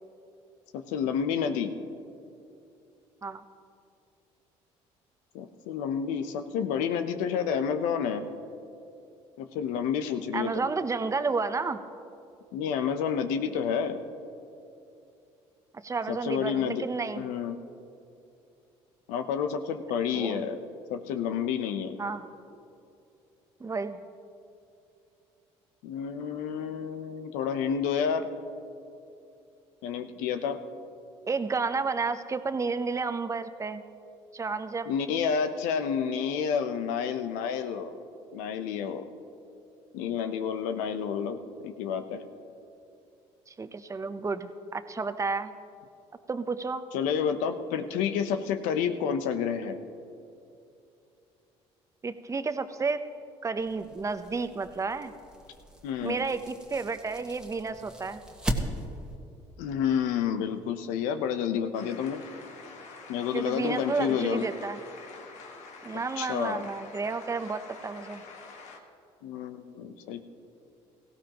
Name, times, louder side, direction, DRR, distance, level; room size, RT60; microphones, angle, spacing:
voice 1, 0.7-1.7 5.3-8.2 9.4-10.7 12.5-14.0 16.1-16.9 17.1-17.6 19.1-20.6 20.9-22.0 25.8-28.3 29.8-30.6 34.9-38.0 38.3-39.1 39.9-41.4 41.6-42.2 46.9-49.8 55.8-56.2 59.6-62.2 63.1-64.5 66.2-66.7 69.2-70.2, left 7 dB, 85° left, 9 dB, 0.8 m, -29 dB
voice 2, 10.3-11.8 15.8-17.2 20.1-20.5 22.0-22.2 23.6-24.0 31.3-33.8 34.3-34.9 43.5-45.5 46.3-46.8 52.0-53.0 53.4-55.1 56.0-58.2 63.3-64.8 65.8-68.2, right 4 dB, 25° right, 10 dB, 0.8 m, -31 dB
sound 1, 53.6-59.2, right 1 dB, 5° right, 1.4 m, -38 dB
sound 2, 61.7-68.8, left 4 dB, 70° left, 1.5 m, -47 dB
17.5 x 15.5 x 3.0 m, 2.7 s
supercardioid pair, 80°, 13 cm